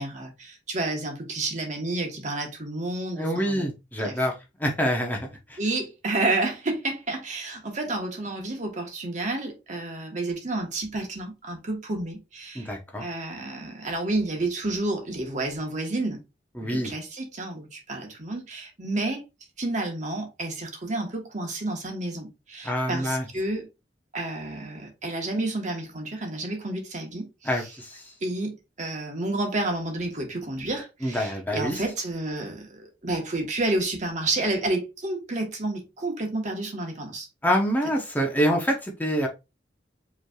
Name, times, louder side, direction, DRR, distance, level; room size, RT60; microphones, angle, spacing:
voice 1, 0.0-3.6 4.0-4.1 5.6-12.7 13.0-16.2 16.6-19.2 19.6-23.7 24.1-27.7 28.2-37.3, right 2 dB, 45° right, 1.1 m, -30 dB
voice 2, 3.2-4.3 4.6-5.6 12.5-13.0 16.6-16.9 22.6-23.3 27.4-28.1 31.0-31.8 37.4-39.3, equal, 10° left, 0.8 m, -26 dB
5.1 x 3.2 x 2.3 m
head